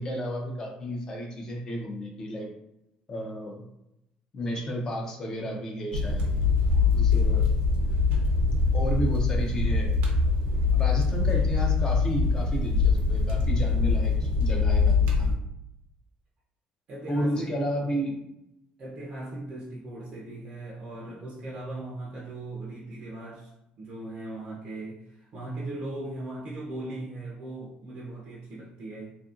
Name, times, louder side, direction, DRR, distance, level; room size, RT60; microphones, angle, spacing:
voice 1, 0.0-2.5 3.1-3.6 4.3-6.3 6.9-7.5 8.7-9.9 10.7-15.3 17.1-18.2, equal, 25° left, 0.5 m, -32 dB
sound 1, 5.9-15.3, left 4 dB, 85° right, 0.6 m, -23 dB
voice 2, 16.9-17.5 18.8-23.5 23.8-29.1, right 2 dB, 40° right, 0.5 m, -38 dB
2.7 x 2.5 x 2.4 m
cardioid pair, 180°, 3 cm